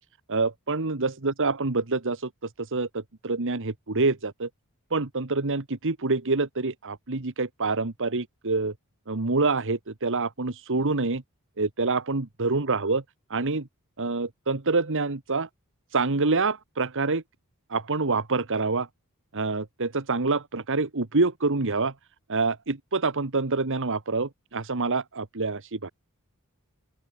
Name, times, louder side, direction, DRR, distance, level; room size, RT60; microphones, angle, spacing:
voice 1, 0.3-4.5 4.9-8.7 9.1-11.2 11.6-13.0 13.3-13.7 14.0-15.5 15.9-17.2 17.7-18.9 19.3-21.9 22.3-25.9, right 3 dB, 60° right, 1.5 m, -26 dB
open air
head